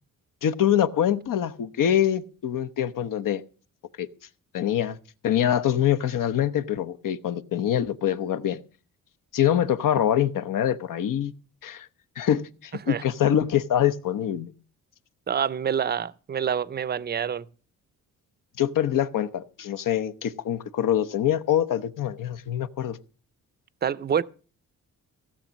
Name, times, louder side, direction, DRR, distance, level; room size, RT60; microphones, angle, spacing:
voice 1, 0.4-3.4 4.0-4.1 4.5-5.0 5.2-8.6 9.3-11.3 11.6-11.9 12.2-14.5 18.6-23.0, left 10 dB, 75° left, 0.9 m, -24 dB
voice 2, 15.3-17.5 23.8-24.2, right 8 dB, 30° right, 0.5 m, -27 dB
16.5 x 7.2 x 6.4 m
cardioid pair, 125°, 33 cm